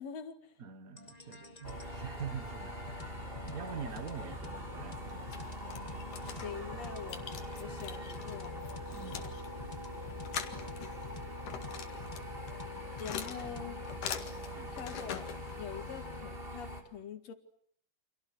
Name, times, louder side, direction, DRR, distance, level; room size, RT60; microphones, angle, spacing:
voice 1, 0.0-0.6 6.3-8.7 9.8-10.2 13.0-13.8 14.7-15.3 15.6-17.3, left 7 dB, 60° left, 3.0 m, -45 dB
voice 2, 0.6-3.1 3.4-5.3 8.9-9.2 14.5-14.7, right 8 dB, 55° right, 1.0 m, -44 dB
sound 1, 1.0-16.3, left 3 dB, 20° left, 1.3 m, -50 dB
sound 2, 1.6-16.8, left 1 dB, 15° right, 3.5 m, -43 dB
sound 3, 5.0-16.1, left 8 dB, 85° left, 3.5 m, -45 dB
30.0 x 27.0 x 6.4 m
omnidirectional pair, 3.6 m